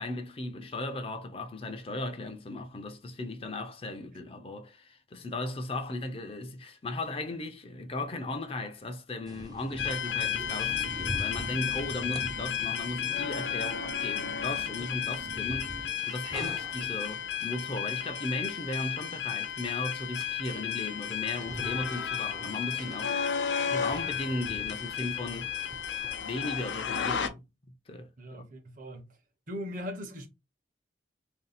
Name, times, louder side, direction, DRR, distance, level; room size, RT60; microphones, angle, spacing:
voice 1, 0.0-23.4 23.7-25.6 26.2-27.4 27.9-28.5, left 2 dB, 30° left, 0.5 m, -36 dB
sound 1, 9.2-26.2, right 1 dB, 20° right, 0.5 m, -45 dB
sound 2, 9.7-15.9, right 2 dB, 90° right, 0.8 m, -47 dB
sound 3, 9.8-27.3, left 9 dB, 90° left, 0.6 m, -33 dB
voice 2, 28.2-29.2 29.5-30.3, left 1 dB, 50° right, 0.9 m, -39 dB
3.3 x 2.6 x 4.0 m
head